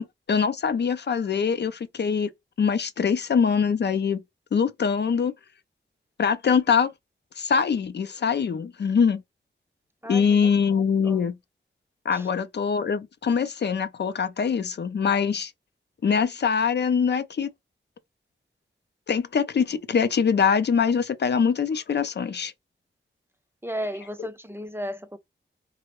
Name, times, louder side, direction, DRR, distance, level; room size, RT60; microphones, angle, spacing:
voice 1, 0.0-2.3 2.6-4.2 4.5-5.3 6.2-6.9 7.4-9.2 10.1-11.4 12.1-15.5 16.0-17.5 19.1-22.5, left 6 dB, 60° left, 0.4 m, -23 dB
voice 2, 10.0-10.4 11.0-11.2 12.1-12.3 23.6-25.2, equal, 10° right, 0.5 m, -34 dB
3.5 x 2.1 x 2.9 m
wide cardioid pair, 85°, 20 cm